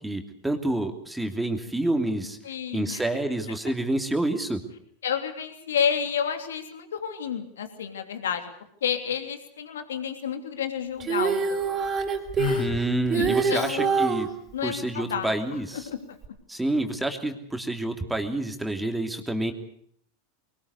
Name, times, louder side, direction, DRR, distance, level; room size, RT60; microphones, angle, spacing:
voice 1, 0.0-2.4 2.7-4.6 12.6-14.3 14.6-15.9 16.5-19.5, right 1 dB, 5° right, 5 dB, 3.0 m, -28 dB
voice 2, 2.4-3.0 5.0-8.5 8.8-11.9 13.1-14.0 14.5-15.3 15.7-16.2, left 8 dB, 85° left, 7 dB, 3.1 m, -30 dB
Female singing, 11.0-14.3 16.2-16.3, right 5 dB, 30° right, 3.8 m, -25 dB
Sigh, 12.4-12.9, left 10 dB, 65° left, 1.6 m, -29 dB
22.0 x 20.0 x 8.2 m, 0.66 s
hypercardioid pair, 105°, 0 cm